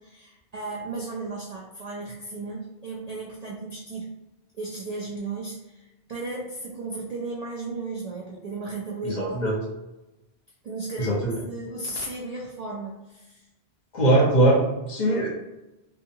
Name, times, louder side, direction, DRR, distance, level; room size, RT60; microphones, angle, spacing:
voice 1, 0.0-4.1 4.6-9.4 10.6-13.5, right 3 dB, 60° right, -3 dB, 0.4 m, -35 dB
voice 2, 9.0-9.6 11.0-11.3 13.9-15.3, right 1 dB, 45° left, -2 dB, 0.7 m, -21 dB
2.7 x 2.4 x 2.6 m, 0.98 s
omnidirectional pair, 1.1 m